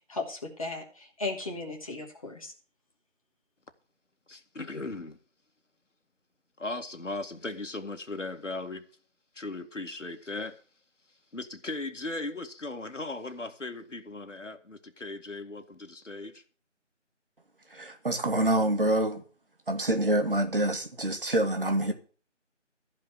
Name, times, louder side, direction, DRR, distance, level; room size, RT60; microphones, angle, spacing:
voice 1, 0.1-2.5, left 3 dB, 30° left, 2.7 m, -36 dB
voice 2, 4.3-5.2 6.6-8.9 9.3-10.6 11.3-16.4, left 2 dB, 75° left, 2.2 m, -37 dB
voice 3, 17.7-19.2 19.7-21.9, right 1 dB, 45° right, 2.3 m, -26 dB
15.0 x 5.2 x 9.7 m
figure-of-eight pair, 170°, 37 cm